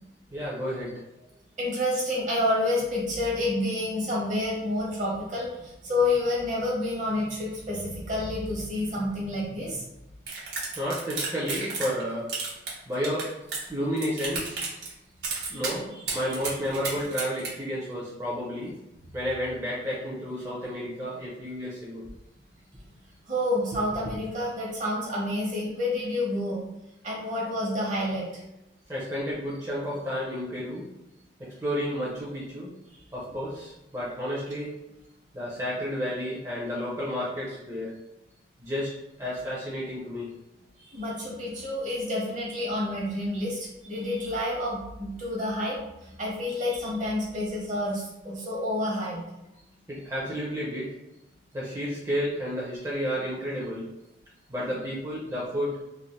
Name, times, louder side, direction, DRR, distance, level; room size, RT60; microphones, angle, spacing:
voice 1, 0.3-1.0 10.8-12.3 12.9-13.3 13.7-14.6 15.5-15.9 16.1-18.7 19.1-22.0 28.9-30.9 31.4-32.7 33.1-34.7 35.3-38.0 38.6-40.3 49.9-50.9 51.5-53.8 54.5-55.8, equal, 20° right, -7 dB, 0.5 m, -31 dB
voice 2, 1.6-9.8 15.5-15.6 16.1-16.3 23.3-26.6 27.0-28.4 32.9-33.0 40.8-49.2, left 1 dB, 45° right, -4 dB, 0.9 m, -29 dB
sound 1, 10.3-12.0 12.3-13.7 14.0-14.9 15.2-15.7 16.1-17.5, right 4 dB, 75° right, 1.0 m, -32 dB
3.2 x 2.5 x 2.2 m, 0.90 s
head